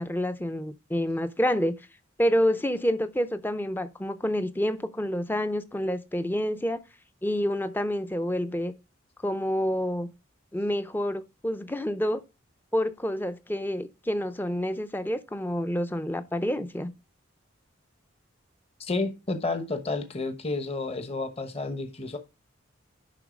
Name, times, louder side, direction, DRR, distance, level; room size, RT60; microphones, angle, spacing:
voice 1, 0.0-1.7 2.2-6.8 7.2-8.7 9.2-10.1 10.5-12.2 12.7-16.9, equal, 10° left, 0.5 m, -28 dB
voice 2, 18.8-22.2, left 3 dB, 30° left, 1.0 m, -31 dB
11.0 x 4.0 x 5.1 m
head